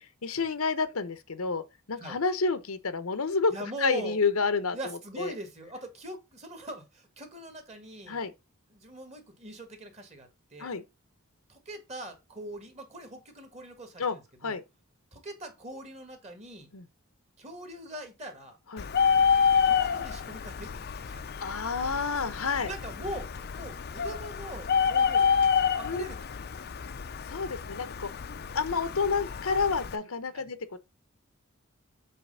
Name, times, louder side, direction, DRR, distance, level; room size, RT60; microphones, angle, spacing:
voice 1, 0.0-3.5 3.8-5.3 8.1-8.3 10.6-10.8 14.0-14.2 14.4-14.6 16.7-16.9 18.7-18.9 21.4-22.7 25.8-26.0 27.3-28.1 28.5-30.8, left 4 dB, 85° left, 0.9 m, -29 dB
voice 2, 3.5-4.2 4.7-8.2 8.7-10.7 11.5-14.6 15.1-16.7 17.4-18.6 19.6-21.3 22.6-26.2 30.3-30.4, right 1 dB, 30° right, 1.9 m, -42 dB
Bird, 18.8-30.0, left 6 dB, 50° left, 0.5 m, -28 dB
7.7 x 3.2 x 5.4 m
head